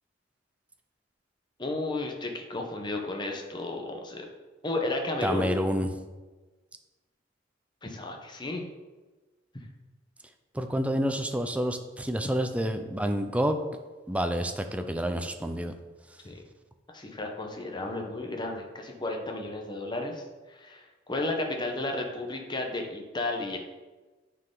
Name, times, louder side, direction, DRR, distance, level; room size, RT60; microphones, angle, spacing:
voice 1, 1.6-4.3 4.6-5.5 7.8-8.6 16.2-16.4 16.9-23.6, left 2 dB, 25° left, 2 dB, 1.0 m, -33 dB
voice 2, 5.2-5.9 10.5-13.6 14.1-15.7, equal, 5° right, 6 dB, 0.4 m, -28 dB
9.6 x 4.7 x 3.9 m, 1.2 s
head